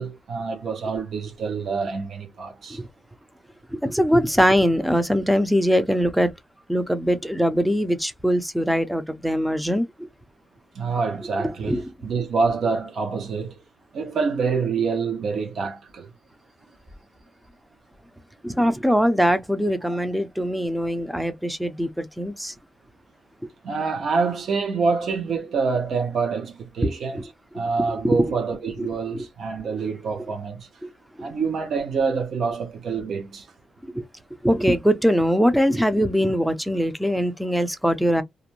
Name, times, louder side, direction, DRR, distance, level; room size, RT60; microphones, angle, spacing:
voice 1, 0.0-2.8 10.7-13.6 13.9-16.1 19.9-20.0 23.6-30.7 31.2-33.5, right 5 dB, 60° right, 0.7 m, -26 dB
voice 2, 3.7-6.3 6.7-10.1 11.4-11.8 18.4-22.5 27.1-27.3 28.0-28.3 28.8-28.9 30.8-30.9 31.2-31.3 33.9-34.0 34.4-38.2, equal, ahead, 0.4 m, -22 dB
2.5 x 2.1 x 2.9 m
cardioid pair, 125°, 0 cm